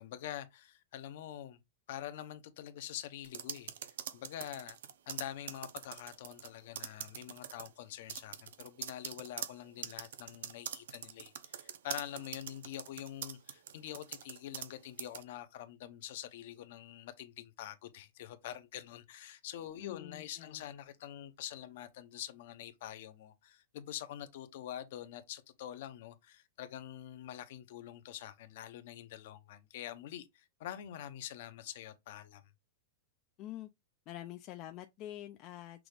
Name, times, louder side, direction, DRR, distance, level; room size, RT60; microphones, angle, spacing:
voice 1, 0.0-1.6 1.9-4.8 5.1-32.5, left 11 dB, 50° left, 0.7 m, -46 dB
sound 1, 3.2-6.5 6.7-7.7 8.1-14.7 15.0-15.2, right 9 dB, 75° right, 0.7 m, -43 dB
voice 2, 19.8-20.7 33.4-33.7 34.1-35.9, left 13 dB, 30° left, 0.3 m, -46 dB
6.0 x 2.4 x 3.3 m
supercardioid pair, 175°, 0 cm